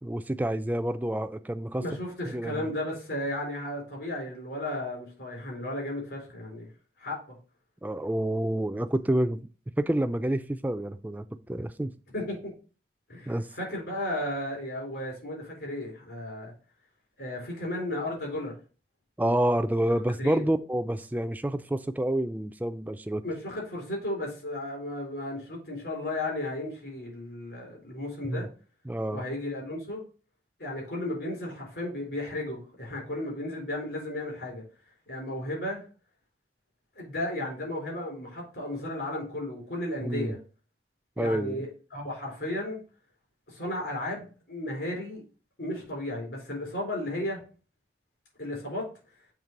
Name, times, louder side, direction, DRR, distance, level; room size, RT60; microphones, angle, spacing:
voice 1, 0.0-1.8 2.3-2.7 7.8-9.5 9.8-11.9 13.3-13.5 19.2-23.2 28.2-28.5 28.9-29.2 40.0-40.4 41.2-41.7, right 1 dB, 10° right, 0.3 m, -28 dB
voice 2, 1.8-6.7 7.0-7.4 12.1-12.5 13.1-16.5 17.2-18.5 20.2-20.4 23.2-28.5 29.1-30.0 30.6-34.6 35.1-35.8 37.0-40.4 41.2-42.8 43.5-45.2 45.6-47.4 48.4-48.8, left 1 dB, 70° left, 4.1 m, -34 dB
7.3 x 3.3 x 5.2 m
head